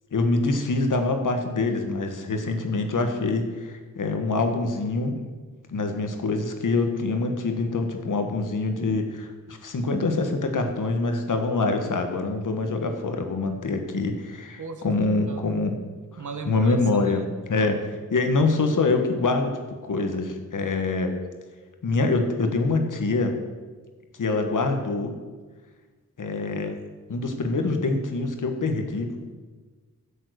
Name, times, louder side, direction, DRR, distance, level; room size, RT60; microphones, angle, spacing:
voice 1, 0.1-5.2 5.7-15.7 16.4-17.8 18.1-19.6 19.9-21.1 21.8-23.3 24.2-25.1 26.2-26.8 27.1-29.2, left 3 dB, 70° left, 5 dB, 1.5 m, -25 dB
voice 2, 14.6-14.9 15.3-15.4 16.2-16.8 17.1-17.2 17.5-17.7, right 4 dB, 65° right, 7 dB, 1.3 m, -36 dB
11.5 x 7.5 x 6.4 m, 1.4 s
wide cardioid pair, 85°, 32 cm